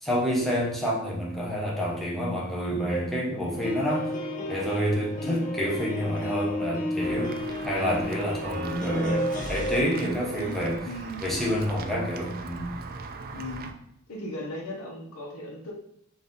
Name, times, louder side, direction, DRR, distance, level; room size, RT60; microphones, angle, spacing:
voice 1, 0.0-4.1 4.5-7.3 7.7-10.8 11.2-12.7, equal, ahead, -5 dB, 0.8 m, -28 dB
sound 1, 3.5-9.8, left 1 dB, 35° left, 0.7 m, -32 dB
voice 2, 5.2-5.5 10.1-11.2 13.3-13.7 14.1-15.7, left 1 dB, 75° left, 0 dB, 0.9 m, -37 dB
Walk footsteps / Bell, 7.0-13.7, right 3 dB, 40° right, 0.4 m, -39 dB
4.1 x 2.6 x 3.7 m, 0.76 s
head